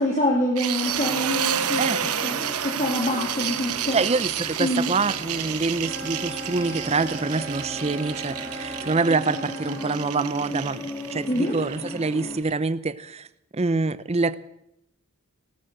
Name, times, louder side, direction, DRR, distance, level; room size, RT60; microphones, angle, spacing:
voice 1, 0.0-1.8 2.2-4.0 4.6-4.9 11.3-11.5, left 1 dB, 35° left, -3 dB, 2.7 m, -25 dB
sound 1, 0.6-12.5, right 9 dB, 90° right, 1.0 m, -30 dB
sound 2, 0.8-12.4, left 1 dB, 15° left, 2.0 m, -38 dB
voice 2, 1.8-2.1 3.9-10.8 11.1-13.3 13.5-14.3, right 3 dB, 30° right, 16 dB, 0.6 m, -26 dB
sound 3, 5.7-9.9, right 1 dB, 15° right, 5.5 m, -37 dB
18.0 x 12.5 x 6.4 m, 0.80 s
head